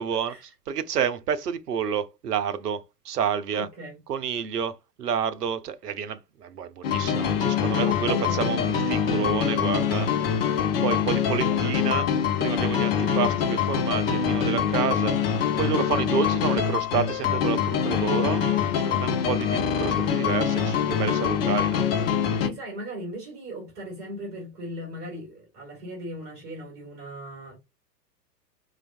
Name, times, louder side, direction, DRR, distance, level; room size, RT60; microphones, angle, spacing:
voice 1, 0.0-0.3 0.7-3.7 4.1-10.1 10.8-12.0 12.4-18.5 18.8-21.9, right 8 dB, 70° right, 0.6 m, -29 dB
voice 2, 3.5-4.0 7.8-8.5 11.4-12.2 22.4-27.6, right 1 dB, 20° right, 1.6 m, -38 dB
sound 1, 6.8-22.5, left 7 dB, 35° left, 0.6 m, -24 dB
4.4 x 2.4 x 2.5 m
figure-of-eight pair, 100°, 50 cm